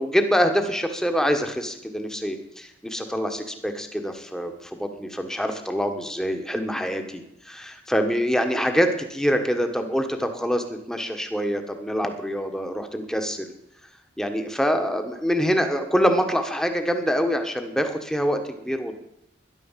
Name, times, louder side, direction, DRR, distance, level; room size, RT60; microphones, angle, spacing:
voice 1, 0.0-13.5 14.2-19.0, equal, 5° left, 5 dB, 1.4 m, -25 dB
13.0 x 11.0 x 7.4 m, 0.81 s
head